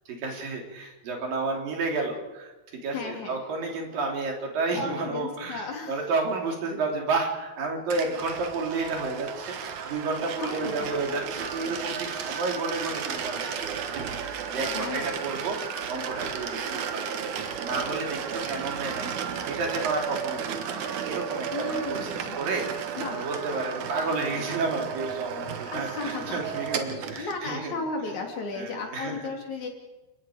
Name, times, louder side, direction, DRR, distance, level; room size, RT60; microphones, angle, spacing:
voice 1, 0.1-27.7 28.5-29.3, right 3 dB, 80° right, 1 dB, 4.9 m, -31 dB
voice 2, 2.9-3.4 4.8-6.0 10.4-10.8 14.7-15.4 21.5-22.4 23.0-23.2 25.7-29.7, left 4 dB, 60° left, 1 dB, 4.2 m, -35 dB
sound 1, 7.9-27.4, right 7 dB, 65° right, 2.7 m, -33 dB
29.5 x 19.0 x 5.1 m, 1.1 s
omnidirectional pair, 3.9 m